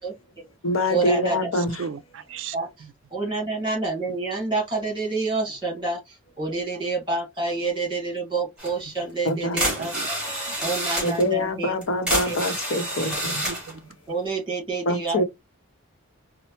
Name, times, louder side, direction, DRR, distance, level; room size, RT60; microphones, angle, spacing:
voice 1, 0.0-0.4 0.9-1.4 2.5-2.7 3.1-10.2 10.6-11.7 12.2-12.3 14.1-15.2, right 3 dB, 20° right, 1.5 m, -28 dB
voice 2, 0.6-1.8 9.2-9.6 11.0-13.4 14.9-15.2, left 1 dB, 75° left, 0.8 m, -25 dB
voice 3, 1.8-2.6 9.4-10.1 10.5-10.6 13.4-13.9, right 6 dB, 65° right, 0.3 m, -36 dB
sound 1, 8.6-8.7 9.3-9.4 9.6-11.3 11.8-13.7, right 1 dB, 5° right, 1.9 m, -28 dB
4.3 x 2.0 x 2.8 m
head